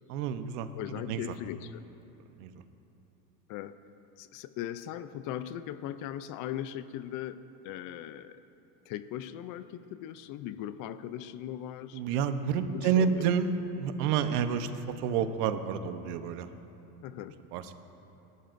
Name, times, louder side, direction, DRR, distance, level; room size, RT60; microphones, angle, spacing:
voice 1, 0.1-1.2 2.4-2.6 11.9-16.5 17.5-17.7, right 7 dB, 85° right, 9 dB, 1.0 m, -29 dB
voice 2, 0.8-1.9 3.5-3.8 4.2-8.4 8.9-12.0 12.7-13.3 17.0-17.4, left 11 dB, 45° left, 13 dB, 0.5 m, -39 dB
27.5 x 12.5 x 2.6 m, 2.9 s
cardioid pair, 145°, 45 cm